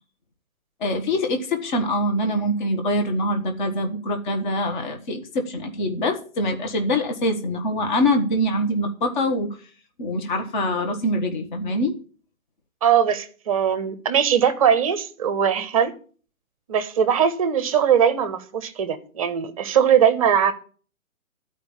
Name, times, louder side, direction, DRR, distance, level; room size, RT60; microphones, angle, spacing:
voice 1, 0.8-9.6 10.0-12.0, left 1 dB, 35° left, 1.4 m, -24 dB
voice 2, 12.8-15.9 16.7-20.5, right 8 dB, 25° right, 0.8 m, -20 dB
12.0 x 5.0 x 7.3 m
hypercardioid pair, 155°, 41 cm